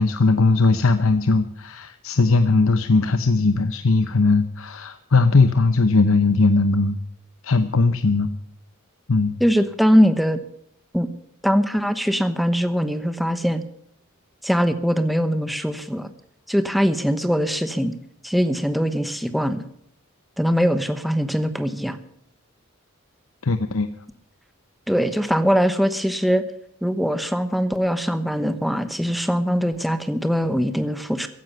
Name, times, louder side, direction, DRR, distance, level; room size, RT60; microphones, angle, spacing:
voice 1, 0.0-7.0 7.4-8.3 9.1-9.4 23.4-23.9, left 3 dB, 70° left, 10 dB, 0.9 m, -19 dB
voice 2, 9.4-10.4 10.9-11.1 11.4-13.6 14.4-16.1 16.5-17.9 18.2-19.6 20.4-22.0 24.9-26.4 26.8-31.3, equal, ahead, 10 dB, 1.0 m, -21 dB
15.5 x 11.0 x 6.9 m, 0.69 s
head